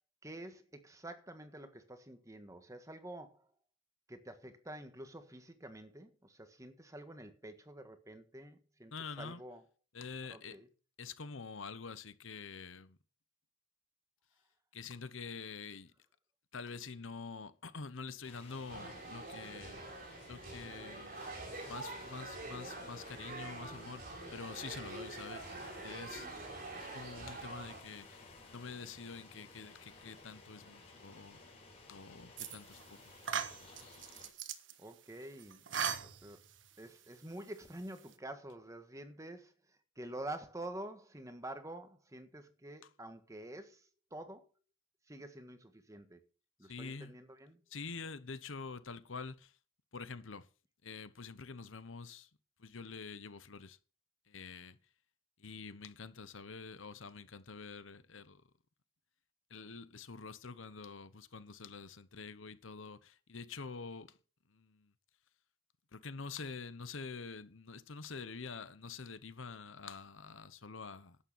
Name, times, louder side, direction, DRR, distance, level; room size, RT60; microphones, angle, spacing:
voice 1, 0.2-3.5 4.1-9.6 10.3-10.7 34.8-35.6 36.0-36.4 36.8-44.5 45.1-46.2 46.6-47.6, right 1 dB, 15° right, 1.5 m, -48 dB
voice 2, 8.9-9.4 9.9-10.6 11.0-13.0 14.7-15.9 16.5-19.9 20.2-21.3 21.7-25.4 25.8-26.3 26.8-31.4 31.9-33.0 46.6-47.2 47.7-49.5 49.9-50.5 50.8-52.3 52.6-53.8 54.3-54.8 55.4-58.4 59.5-64.1 64.5-64.9 65.9-71.2, left 4 dB, 75° left, 1.0 m, -47 dB
sound 1, 18.2-34.3, left 3 dB, 30° left, 5.9 m, -56 dB
sound 2, 18.7-27.8, right 2 dB, 50° right, 4.5 m, -46 dB
sound 3, 32.4-32.8 33.2-34.7 35.4-36.6, right 7 dB, 65° right, 1.4 m, -38 dB
11.5 x 8.8 x 5.7 m
head